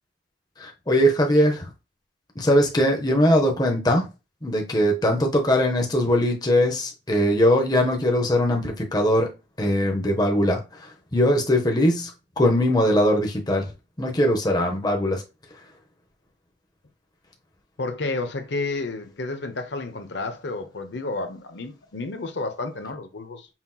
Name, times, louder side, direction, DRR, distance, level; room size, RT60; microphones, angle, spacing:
voice 1, 0.6-1.7 2.4-4.1 4.4-9.3 9.6-13.7 14.0-15.2, equal, 20° left, 0.7 m, -21 dB
voice 2, 17.8-23.5, left 3 dB, 65° left, 0.8 m, -31 dB
5.7 x 2.9 x 2.3 m
head